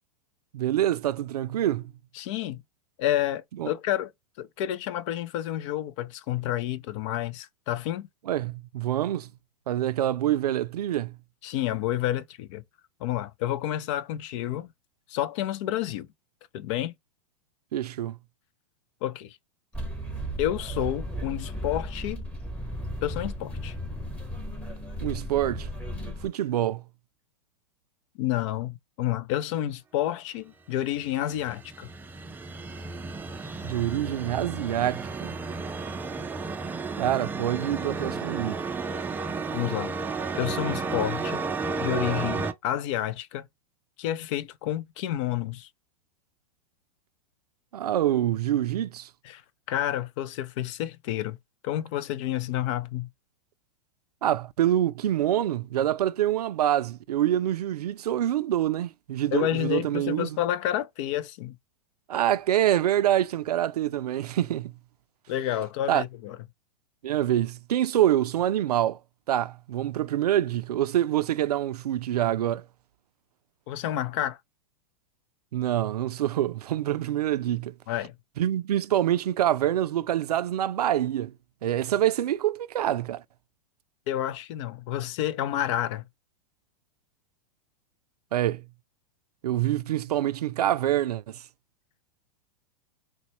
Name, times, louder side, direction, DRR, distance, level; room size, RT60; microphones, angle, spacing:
voice 1, 0.5-1.9 3.6-3.7 8.3-9.3 9.7-11.1 17.7-18.2 25.0-25.7 26.2-26.8 33.6-35.3 37.0-38.6 47.7-49.1 54.2-60.4 62.1-64.7 65.9-66.0 67.0-69.0 69.3-72.6 75.5-77.7 78.4-81.3 81.6-83.2 88.3-88.6 89.4-91.4, right 12 dB, 85° right, 0.4 m, -26 dB
voice 2, 2.2-2.6 3.0-4.1 4.4-8.1 11.4-12.6 13.0-14.7 15.1-16.1 16.5-16.9 19.0-19.4 20.4-22.2 23.0-23.7 28.2-31.9 39.5-39.9 40.3-41.4 41.8-43.5 44.0-45.7 49.2-49.4 49.7-51.4 51.6-53.1 59.3-61.6 65.3-66.4 73.7-74.4 77.9-78.1 84.1-86.0, left 12 dB, 50° left, 0.5 m, -29 dB
sound 1, 19.7-26.3, equal, 5° left, 1.2 m, -35 dB
sound 2, 31.0-42.5, right 4 dB, 10° right, 0.4 m, -33 dB
3.9 x 2.2 x 3.0 m
hypercardioid pair, 115°, 19 cm